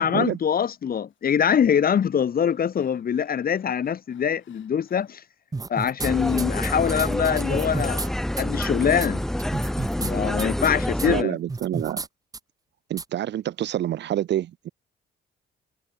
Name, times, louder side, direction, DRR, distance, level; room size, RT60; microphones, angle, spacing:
voice 1, 0.0-5.2 5.7-8.1 8.4-9.2 10.0-11.4, left 8 dB, 50° left, 1.3 m, -24 dB
sound 1, 1.1-1.4 1.9-5.3 6.0-7.0 7.3-7.4 7.7-8.7, left 11 dB, 75° left, 5.5 m, -58 dB
sound 2, 5.5-6.1 6.4-8.1 8.4-8.7 9.0-9.1 9.4-10.1 10.4-10.7 11.0-11.1 11.5-12.1 12.3-12.4 13.0-13.1, right 3 dB, 20° right, 0.8 m, -32 dB
sound 3, 6.0-11.2, left 1 dB, ahead, 0.3 m, -27 dB
voice 2, 11.1-12.0 12.9-14.7, right 12 dB, 60° right, 0.7 m, -27 dB
cardioid pair, 90°, 20 cm